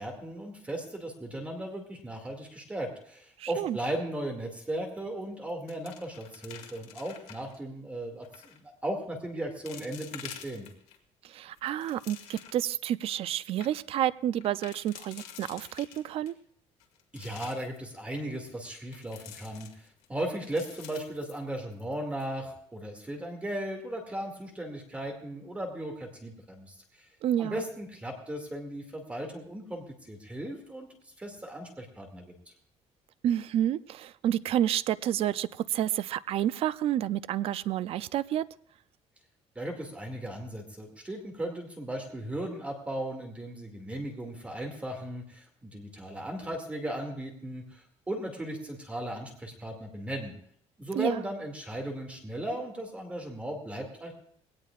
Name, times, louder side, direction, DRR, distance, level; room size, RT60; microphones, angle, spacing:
voice 1, 0.0-10.7 17.1-27.1 27.4-30.9 31.2-32.3 39.6-50.3 50.8-54.1, right 1 dB, 10° right, 2 dB, 2.2 m, -37 dB
voice 2, 3.4-3.8 11.2-16.3 27.2-27.6 33.2-38.5 50.9-51.2, right 11 dB, 55° right, 16 dB, 0.4 m, -29 dB
sound 1, 4.9-5.2 5.5-7.6 8.2-8.6 9.2-9.3 9.7-11.0 11.4-12.7 13.1-13.2 13.4-13.7 14.4-16.3 16.8-17.8 18.9-20.1 20.4-21.9 22.2-22.3 22.8-23.1, left 9 dB, 85° left, 2.0 m, -48 dB
20.5 x 17.5 x 2.4 m, 0.63 s
cardioid pair, 165°, 12 cm